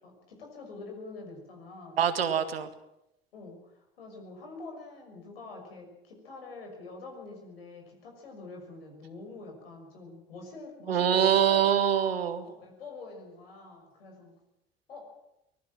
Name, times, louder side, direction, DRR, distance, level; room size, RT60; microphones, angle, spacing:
voice 1, 0.0-2.0 3.3-11.7 12.4-14.3 14.9-15.1, left 3 dB, 80° left, 2 dB, 6.3 m, -45 dB
voice 2, 2.0-2.7 10.9-12.4, right 9 dB, 85° right, 9 dB, 1.8 m, -24 dB
24.0 x 19.5 x 7.6 m, 0.86 s
figure-of-eight pair, 60°, 29 cm